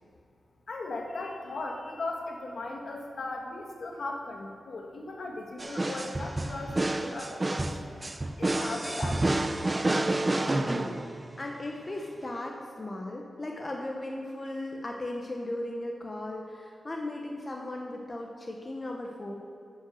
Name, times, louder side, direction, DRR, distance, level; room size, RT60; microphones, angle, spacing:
voice 1, 0.7-8.0 8.4-9.6, left 2 dB, 60° left, 1 dB, 1.3 m, -38 dB
sound 1, 5.6-11.4, right 2 dB, 20° right, 0.4 m, -29 dB
voice 2, 10.3-19.3, left 1 dB, 25° left, 0 dB, 0.8 m, -37 dB
9.8 x 5.7 x 6.2 m, 2.5 s
wide cardioid pair, 155°, 0 cm